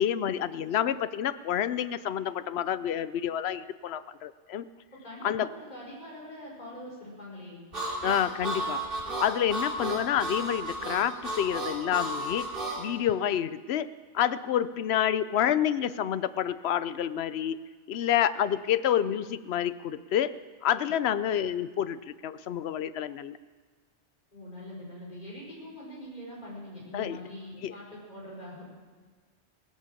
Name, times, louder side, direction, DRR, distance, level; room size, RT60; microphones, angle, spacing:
voice 1, 0.0-4.7 5.2-5.5 8.0-8.8 9.2-12.5 12.8-17.6 17.9-20.3 20.6-23.4 26.9-27.2 27.6-27.7, left 10 dB, 70° left, 15 dB, 0.9 m, -28 dB
voice 2, 5.0-7.6 24.3-28.7, left 1 dB, 40° left, -5 dB, 5.1 m, -43 dB
Harmonica, 7.7-12.8, right 1 dB, 50° right, 3.5 m, -33 dB
17.5 x 10.5 x 7.1 m, 1.5 s
omnidirectional pair, 1.2 m